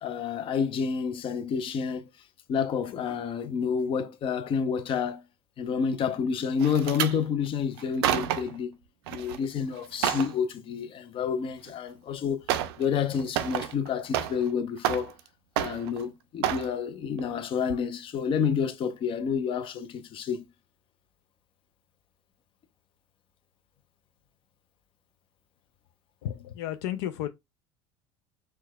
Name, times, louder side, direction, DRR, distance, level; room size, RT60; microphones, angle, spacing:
voice 1, 0.0-2.1 2.5-5.2 5.6-8.7 9.1-12.5 12.8-15.1 15.6-20.5, left 6 dB, 45° left, 0.6 m, -29 dB
sound 1, 6.6-7.2 7.8-8.6 9.1-9.4 9.7-10.3 11.7-11.8 12.5-12.8 13.1-14.5 14.8-15.3 15.6-16.0 16.4-16.7 17.2-17.4 17.7-17.8, right 11 dB, 90° right, 0.4 m, -29 dB
voice 2, 26.2-27.3, left 12 dB, 80° left, 0.4 m, -32 dB
4.5 x 2.2 x 2.2 m
supercardioid pair, 95°, 13 cm